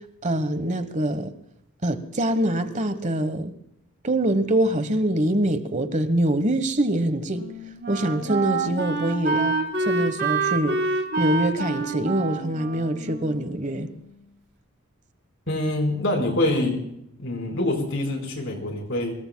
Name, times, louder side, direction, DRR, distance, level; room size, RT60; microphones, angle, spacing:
voice 1, 0.2-1.3 1.8-3.5 4.0-7.5 7.9-10.8 11.2-13.9, right 1 dB, 35° right, 1.2 m, -24 dB
Wind instrument woodwind instrument, 6.8-14.1, right 3 dB, 50° right, 2.7 m, -27 dB
voice 2, 15.5-16.8 17.2-19.1, left 1 dB, 60° left, 4.5 m, -25 dB
25.0 x 21.5 x 2.3 m
head